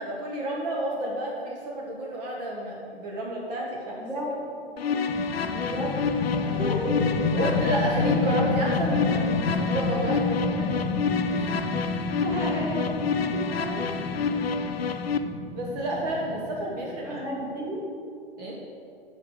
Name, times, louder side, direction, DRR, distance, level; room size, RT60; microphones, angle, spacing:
voice 1, 0.0-4.1 6.4-6.7 7.3-10.3 10.6-10.7 11.3-11.6 15.5-17.2 18.4-18.6, right 1 dB, 40° right, -3 dB, 1.3 m, -30 dB
voice 2, 4.0-4.5 5.5-6.0 6.6-7.0 12.2-13.0 13.3-13.9 17.0-17.8, equal, 10° right, -5 dB, 1.8 m, -32 dB
sound 1, 4.8-15.2, left 5 dB, 70° left, 0.6 m, -29 dB
sound 2, 5.1-17.3, left 3 dB, 15° left, 0.5 m, -30 dB
7.3 x 5.1 x 6.5 m, 2.4 s
figure-of-eight pair, 105°, 31 cm